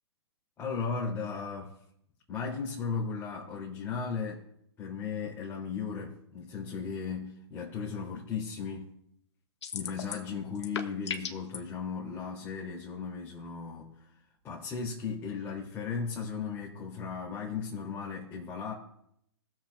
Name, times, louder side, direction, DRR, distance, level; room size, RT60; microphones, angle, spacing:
voice 1, 0.6-1.8 2.3-4.4 4.8-8.9 9.7-14.1 14.4-18.7, left 5 dB, 15° left, 2.3 m, -36 dB
sound 1, 9.6-10.3 10.6-11.6, left 7 dB, 75° left, 1.3 m, -36 dB
19.5 x 7.4 x 2.2 m
hypercardioid pair, 140°, 15 cm